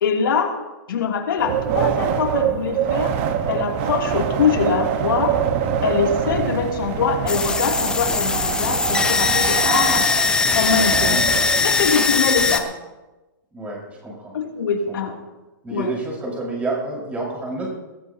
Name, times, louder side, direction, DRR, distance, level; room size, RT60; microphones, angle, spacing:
voice 1, 0.0-0.6 0.9-3.2 3.5-5.3 5.8-10.1 10.5-11.2 11.6-12.7 14.3-15.1 15.7-15.9, left 6 dB, 75° left, 1 dB, 2.9 m, -23 dB
Wind, 1.4-11.8, right 8 dB, 35° right, 1.2 m, -24 dB
sound 1, 7.3-12.6, left 4 dB, 5° left, 0.7 m, -20 dB
voice 2, 11.1-11.4 13.5-14.3 14.9-15.0 15.6-17.7, right 2 dB, 10° right, -3 dB, 5.3 m, -29 dB
20.0 x 14.0 x 2.9 m, 1.1 s
hypercardioid pair, 155°, 11 cm